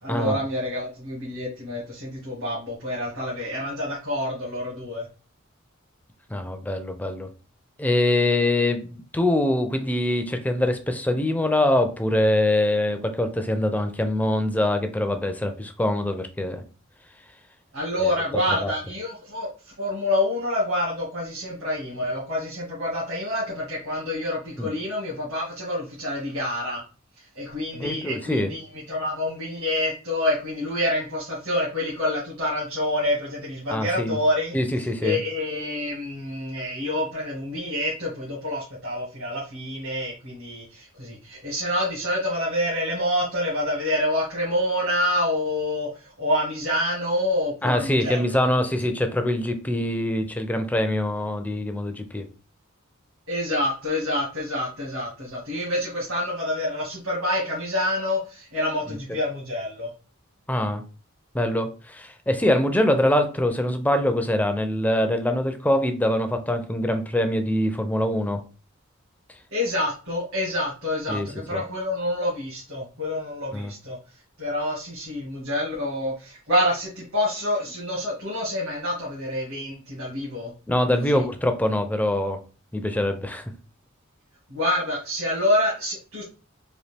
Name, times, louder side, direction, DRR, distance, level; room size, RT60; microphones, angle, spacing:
voice 1, 0.0-5.1 17.7-19.5 19.8-26.8 27.3-28.6 28.9-34.5 35.0-48.4 53.3-59.9 69.5-74.0 74.4-80.5 81.1-81.3 84.5-86.2, left 1 dB, 80° right, -6 dB, 1.8 m, -27 dB
voice 2, 6.3-7.3 7.8-16.6 18.0-18.1 18.6-18.7 24.6-24.7 27.7-28.5 33.7-34.2 34.5-35.2 47.6-52.3 58.9-59.0 60.5-60.8 61.3-68.4 71.1-71.6 73.5-73.7 80.7-82.4 82.7-83.4, left 1 dB, 10° left, 7 dB, 0.4 m, -24 dB
4.1 x 2.6 x 3.3 m, 0.35 s
head